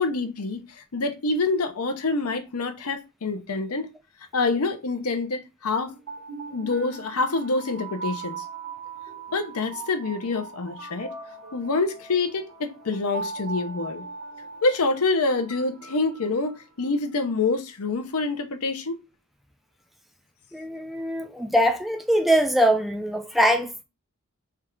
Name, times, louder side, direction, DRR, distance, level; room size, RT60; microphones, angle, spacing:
voice 1, 0.0-3.9 4.3-6.0 6.5-8.4 9.3-11.1 11.5-14.0 14.6-19.0, left 3 dB, 85° left, 0.7 m, -26 dB
sound 1, 5.8-16.9, right 4 dB, 80° right, 1.3 m, -39 dB
voice 2, 20.5-23.8, equal, ahead, 0.4 m, -22 dB
3.5 x 2.4 x 4.4 m
head